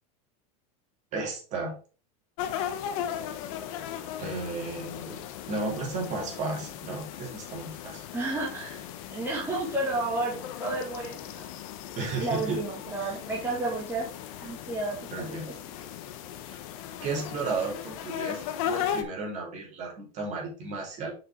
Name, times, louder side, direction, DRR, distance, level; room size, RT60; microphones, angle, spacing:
voice 1, 1.1-1.7 4.2-5.2 5.5-8.1 11.9-12.6 12.9-13.2 15.1-15.5 16.5-16.6 17.0-21.1, right 3 dB, 40° right, -1 dB, 3.1 m, -34 dB
sound 1, 2.4-19.0, left 10 dB, 60° left, 1.1 m, -37 dB
voice 2, 8.1-11.5 12.2-14.1 14.4-15.0 15.3-15.5, right 2 dB, 10° right, -4 dB, 1.9 m, -31 dB
6.3 x 6.0 x 3.7 m, 0.37 s
supercardioid pair, 140°, 19 cm